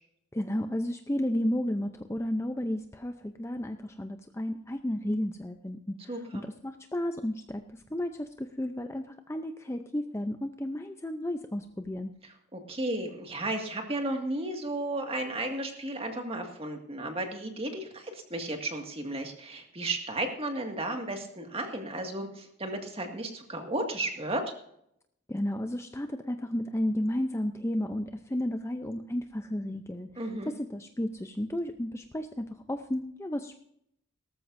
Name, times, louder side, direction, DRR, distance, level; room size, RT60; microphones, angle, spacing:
voice 1, 0.3-12.1 25.3-30.1 30.5-33.6, left 1 dB, 15° left, 7 dB, 0.6 m, -33 dB
voice 2, 6.1-6.4 12.2-24.5 30.2-30.5, right 2 dB, 25° right, 3 dB, 2.0 m, -34 dB
18.0 x 14.0 x 2.7 m, 0.73 s
head